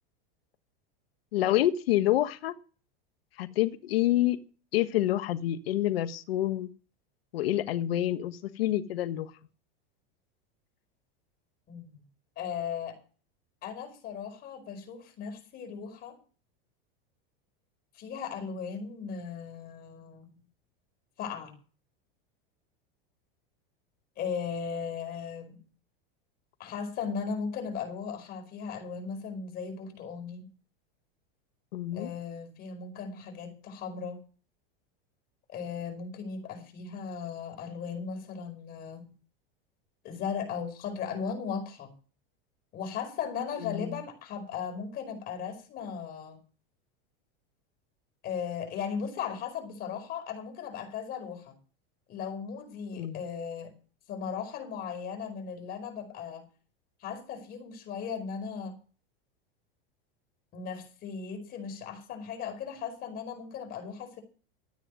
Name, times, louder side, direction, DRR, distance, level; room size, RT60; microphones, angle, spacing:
voice 1, 1.3-2.5 3.4-4.4 4.7-6.7 7.3-9.3 31.7-32.1 43.6-44.0 52.9-53.2, left 14 dB, 85° left, 10 dB, 1.5 m, -27 dB
voice 2, 11.7-12.0 12.4-13.0 13.6-16.2 17.9-20.3 21.2-21.5 24.2-25.6 26.6-30.5 31.9-34.2 35.5-39.1 40.0-41.9 42.7-46.4 48.2-51.5 52.1-53.7 54.1-56.5 57.0-58.7 60.5-64.2, left 6 dB, 30° left, 5 dB, 4.9 m, -37 dB
13.5 x 9.2 x 6.3 m, 0.37 s
supercardioid pair, 160°, 29 cm